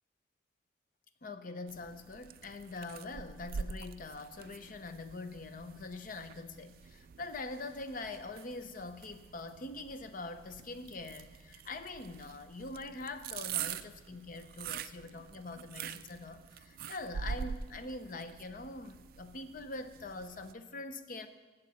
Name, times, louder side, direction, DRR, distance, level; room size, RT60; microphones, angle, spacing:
voice 1, 1.2-21.3, left 3 dB, 50° left, 9 dB, 0.6 m, -44 dB
sound 1, 1.7-20.5, right 7 dB, 50° right, 0.3 m, -45 dB
16.0 x 6.7 x 4.2 m, 1.2 s
head